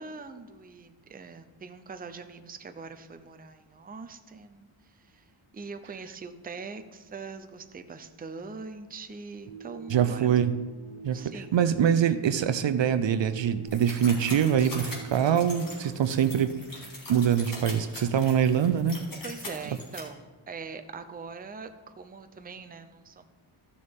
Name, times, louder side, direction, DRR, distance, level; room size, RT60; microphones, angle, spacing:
voice 1, 0.0-5.3 5.5-10.4 11.1-11.6 19.2-23.3, right 4 dB, 20° right, 8 dB, 0.5 m, -42 dB
sound 1, 9.4-16.2, right 3 dB, 80° left, 2.4 m, -46 dB
voice 2, 9.9-10.6 11.0-16.6 17.1-19.0, right 8 dB, 65° right, 12 dB, 0.5 m, -24 dB
sound 2, 13.7-20.0, left 1 dB, 40° left, 2.2 m, -41 dB
13.5 x 6.5 x 3.6 m, 1.3 s
wide cardioid pair, 105°, 49 cm